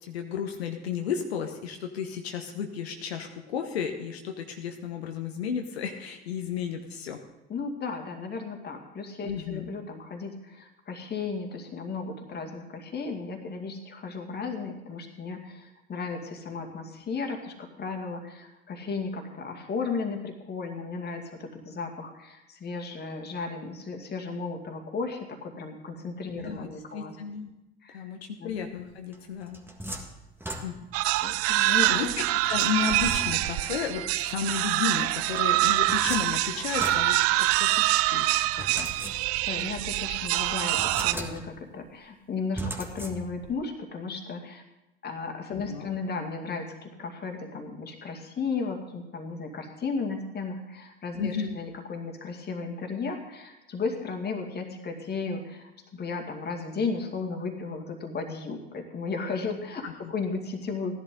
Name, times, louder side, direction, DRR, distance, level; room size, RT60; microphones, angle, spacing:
voice 1, 0.0-7.2 9.3-9.7 26.3-27.5 27.9-29.6 30.6-30.7 31.6-38.9 45.5-45.9 51.2-51.6 59.8-59.9, left 7 dB, 80° left, 4 dB, 1.0 m, -33 dB
voice 2, 7.5-27.2 27.8-28.1 28.4-28.6 31.2-32.1 39.5-44.6 45.0-61.0, left 4 dB, 30° left, 3 dB, 2.2 m, -35 dB
sound 1, 29.1-31.1 32.5-33.7 35.3-37.8 38.6-39.6 40.0-40.1 40.6-41.7 42.5-43.6, equal, 5° right, 1.7 m, -39 dB
sound 2, 30.9-41.1, right 16 dB, 50° right, 0.5 m, -25 dB
15.5 x 11.0 x 3.8 m, 0.94 s
hypercardioid pair, 75°, 31 cm